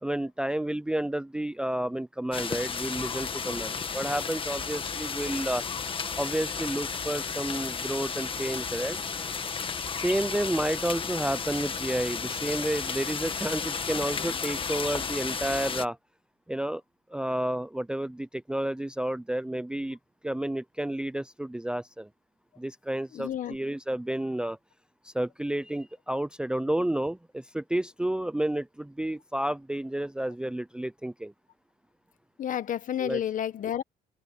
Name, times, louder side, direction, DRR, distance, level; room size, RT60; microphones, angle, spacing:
voice 1, 0.0-5.6 6.2-9.0 10.0-16.0 16.5-16.8 17.1-20.0 20.2-22.1 22.6-24.6 25.0-31.3 33.0-33.2, right 1 dB, 5° right, 0.5 m, -31 dB
sound 1, 2.3-15.9, left 5 dB, 30° left, 1.6 m, -33 dB
voice 2, 23.1-23.6 32.4-33.8, left 10 dB, 50° left, 1.4 m, -30 dB
cardioid pair, 110°, 17 cm